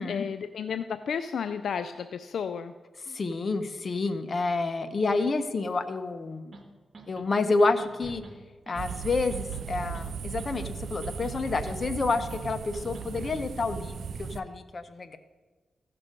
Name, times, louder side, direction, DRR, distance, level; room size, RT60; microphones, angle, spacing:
voice 1, 0.0-2.7, left 7 dB, 75° left, 10 dB, 0.4 m, -32 dB
voice 2, 3.1-6.6 7.1-8.2 8.7-15.2, left 3 dB, 45° left, 10 dB, 0.9 m, -29 dB
sound 1, 6.5-6.6 6.9-7.3 7.6-8.3 8.7-9.0 9.3-10.1 10.4-10.8 11.0-11.8 12.1-12.4 12.7-13.4, right 2 dB, 55° right, 1.4 m, -46 dB
sound 2, 8.8-14.4, right 7 dB, 75° right, 0.4 m, -37 dB
15.5 x 5.9 x 5.2 m, 1.3 s
cardioid pair, 70°, 0 cm